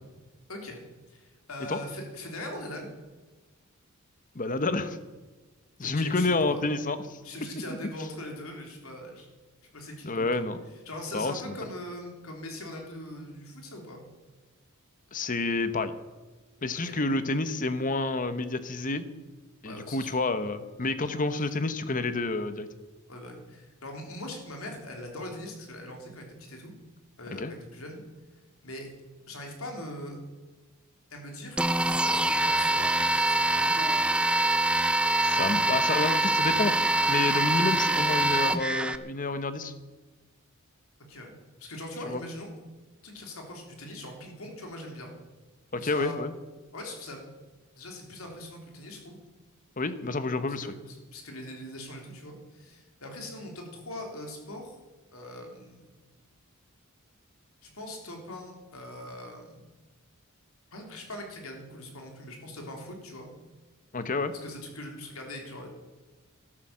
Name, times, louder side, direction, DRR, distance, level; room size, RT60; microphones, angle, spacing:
voice 1, 0.5-0.8 1.1-2.9 5.8-6.6 7.2-9.3 9.7-10.4 10.9-14.0 16.7-17.0 19.6-20.2 23.1-26.7 27.2-28.0 28.6-28.9 29.3-30.2 31.1-31.6 32.0-34.0 41.1-41.3 41.6-42.5 43.0-45.1 45.8-46.2 46.7-47.2 47.7-49.2 50.6-54.8 55.1-55.9 57.6-59.7 60.7-63.3 64.4-65.7, left 1 dB, 80° left, 2 dB, 3.5 m, -41 dB
voice 2, 4.3-5.0 5.8-7.2 10.0-10.6 11.1-11.5 15.1-15.9 16.6-19.1 19.6-22.7 27.4-27.5 35.2-36.7 37.1-39.7 42.1-42.2 45.7-46.3 49.8-50.7 63.9-64.3, left 3 dB, 40° left, 12 dB, 1.0 m, -29 dB
sound 1, 31.6-39.0, right 2 dB, 5° right, 0.5 m, -24 dB
12.5 x 12.0 x 7.5 m, 1.2 s
head